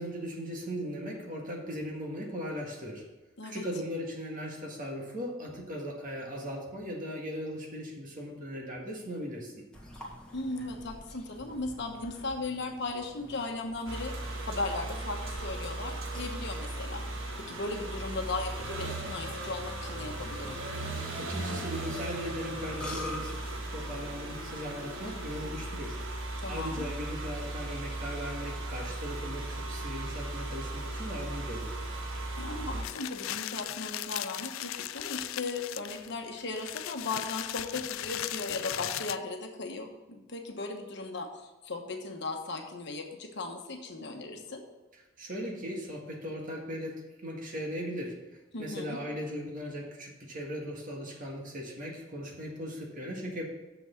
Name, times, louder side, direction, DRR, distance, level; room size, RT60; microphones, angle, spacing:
voice 1, 0.0-3.1 3.4-9.7 21.2-23.4 23.7-26.0 26.5-31.8 45.2-48.3 48.6-53.5, equal, 40° right, 0 dB, 1.9 m, -38 dB
Burping eructation, 9.7-25.7, left 1 dB, 5° left, 1.7 m, -48 dB
voice 2, 10.3-14.1 14.4-17.0 17.4-20.6 26.4-26.9 32.4-44.6 48.5-49.0, left 3 dB, 60° left, 3 dB, 1.2 m, -37 dB
sound 1, 13.9-32.8, right 2 dB, 75° right, 1.6 m, -37 dB
sound 2, 32.8-39.2, left 13 dB, 85° left, 0.3 m, -37 dB
7.0 x 6.1 x 7.0 m, 1.1 s
head